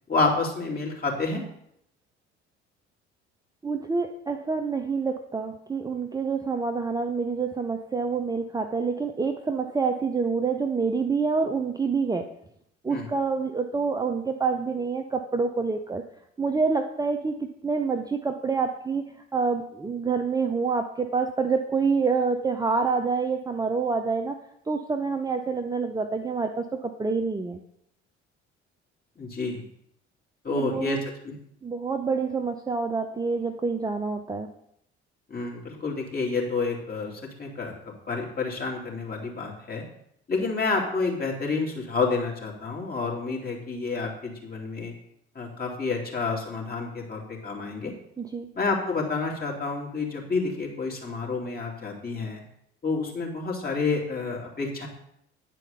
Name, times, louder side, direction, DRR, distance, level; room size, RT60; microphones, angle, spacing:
voice 1, 0.1-1.4 12.9-13.1 29.2-29.6 30.4-31.0 31.2-31.4 35.3-37.7 38.1-39.8 40.3-44.9 45.3-47.9 48.5-52.4 52.8-54.9, left 4 dB, 25° left, -1 dB, 3.1 m, -29 dB
voice 2, 3.6-12.3 12.8-16.0 16.4-19.0 19.3-24.4 24.7-27.6 30.5-31.0 31.6-34.5 48.2-48.5, right 4 dB, 10° right, 5 dB, 0.7 m, -27 dB
10.0 x 4.6 x 6.8 m, 0.74 s
figure-of-eight pair, 55°, 34 cm